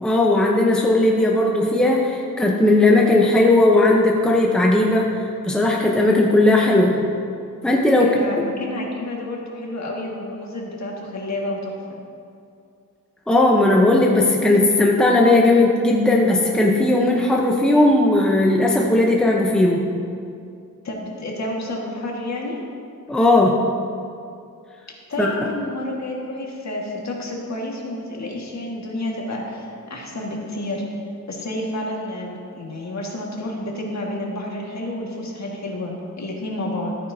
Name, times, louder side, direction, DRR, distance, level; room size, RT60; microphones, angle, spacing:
voice 1, 0.0-5.1 5.4-7.0 7.6-8.1 13.3-19.8 23.1-23.6 25.2-25.5, left 2 dB, ahead, -1 dB, 0.8 m, -17 dB
voice 2, 8.0-12.0 20.8-22.6 25.1-30.9 31.3-37.0, left 1 dB, 50° left, -2 dB, 1.8 m, -30 dB
14.0 x 9.1 x 2.7 m, 2.4 s
wide cardioid pair, 115°, 35 cm